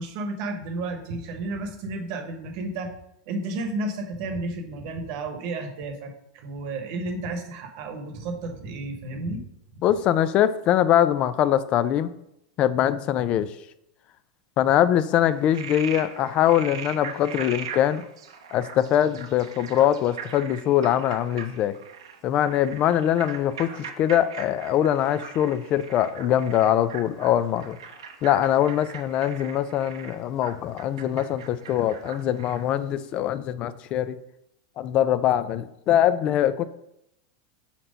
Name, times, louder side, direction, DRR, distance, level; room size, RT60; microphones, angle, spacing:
voice 1, 0.0-2.9 3.3-9.4, right 2 dB, 60° right, 4 dB, 1.1 m, -32 dB
voice 2, 9.8-12.1 12.6-13.5 14.6-18.0 18.5-21.8 22.2-23.7 24.0-27.8 28.2-34.2 34.8-36.6, left 11 dB, 40° left, 15 dB, 0.4 m, -22 dB
Frog, 15.3-32.8, right 7 dB, 85° right, 0.8 m, -40 dB
4.4 x 4.2 x 5.1 m, 0.81 s
hypercardioid pair, 115°, 3 cm